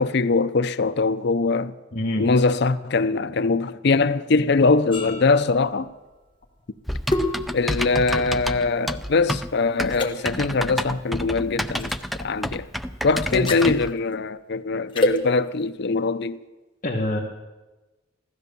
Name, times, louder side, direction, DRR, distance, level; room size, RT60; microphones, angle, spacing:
voice 1, 0.0-1.7 2.2-5.9 7.5-11.9 12.2-12.7 13.0-16.4, left 3 dB, 60° left, 0.6 m, -22 dB
voice 2, 1.9-2.2 13.3-13.4 16.8-17.2, left 1 dB, 45° left, 1.4 m, -25 dB
sound 1, 4.9-9.4 9.9-10.1 11.8-12.0 13.3-13.7 14.9-15.2, left 1 dB, 25° left, 1.4 m, -28 dB
Typing, 6.9-13.9, equal, ahead, 0.4 m, -29 dB
16.0 x 13.0 x 6.8 m
head